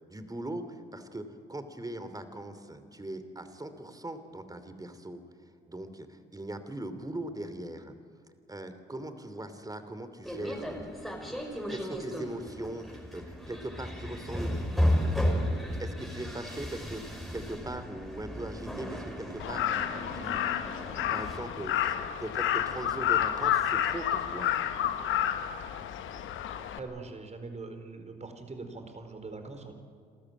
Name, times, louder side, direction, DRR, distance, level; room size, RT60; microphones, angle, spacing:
voice 1, 0.1-5.2 5.7-7.9 8.5-15.0 15.8-24.5, right 1 dB, 15° right, 10 dB, 2.9 m, -40 dB
sound 1, 10.2-21.4, equal, ahead, 5.7 m, -34 dB
Crow, 19.4-26.8, left 10 dB, 70° left, 1.4 m, -30 dB
voice 2, 26.5-29.7, right 3 dB, 30° right, 7 dB, 4.3 m, -42 dB
27.0 x 13.5 x 9.2 m, 2.3 s
hypercardioid pair, 55°, 21 cm